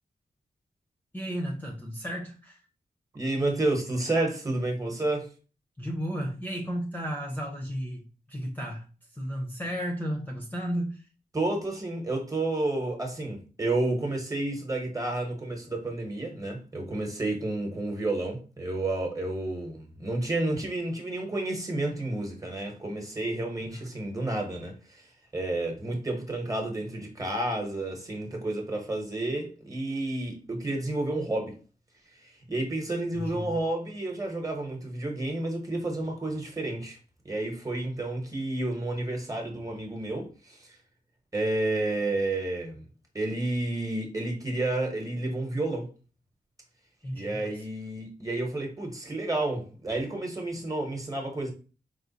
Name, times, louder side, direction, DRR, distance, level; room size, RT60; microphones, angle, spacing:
voice 1, 1.1-2.6 5.8-8.9 9.1-11.0 23.7-23.9 33.1-33.6 47.0-47.5, equal, 10° left, 0.8 m, -33 dB
voice 2, 3.1-5.3 11.3-25.0 25.3-31.6 32.2-37.0 37.2-40.7 41.3-42.9 43.1-45.9 47.1-51.5, right 2 dB, 20° right, 1.2 m, -30 dB
4.8 x 2.2 x 4.0 m
wide cardioid pair, 120°, 16 cm